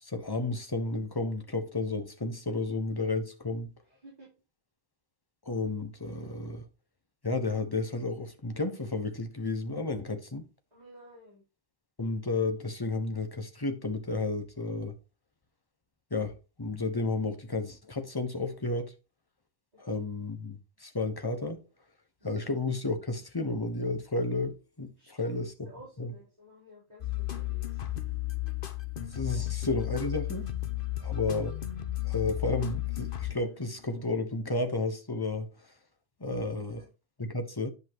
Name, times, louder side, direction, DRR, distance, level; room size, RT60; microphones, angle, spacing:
voice 1, 0.0-3.7 5.4-6.6 7.2-10.5 12.0-15.0 16.1-18.9 19.8-21.6 22.2-25.4 26.0-26.1 29.0-30.5 31.0-31.5 32.0-35.5 36.2-36.9 37.2-37.7, left 3 dB, 20° left, 1.2 m, -32 dB
voice 2, 10.7-11.4 19.7-20.1 22.2-22.5 25.0-27.8 29.3-29.5 30.9-31.1 36.8-36.9, equal, 40° right, 4.4 m, -52 dB
sound 1, 27.0-33.8, left 15 dB, 60° left, 1.1 m, -33 dB
10.5 x 5.6 x 3.0 m
omnidirectional pair, 1.1 m